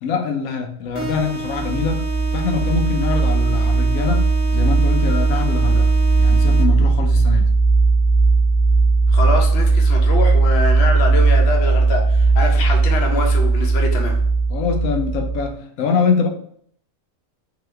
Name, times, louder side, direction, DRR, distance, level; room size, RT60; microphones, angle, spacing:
voice 1, 0.0-5.9 6.2-7.5 14.5-16.3, left 5 dB, 90° left, 3 dB, 1.1 m, -24 dB
sound 1, 0.9-6.9, right 4 dB, 65° right, 1.0 m, -31 dB
sound 2, 1.0-15.5, right 3 dB, 10° right, 0.8 m, -17 dB
voice 2, 9.1-14.2, left 3 dB, 55° left, 2 dB, 1.0 m, -24 dB
3.8 x 2.9 x 3.2 m, 0.63 s
omnidirectional pair, 1.4 m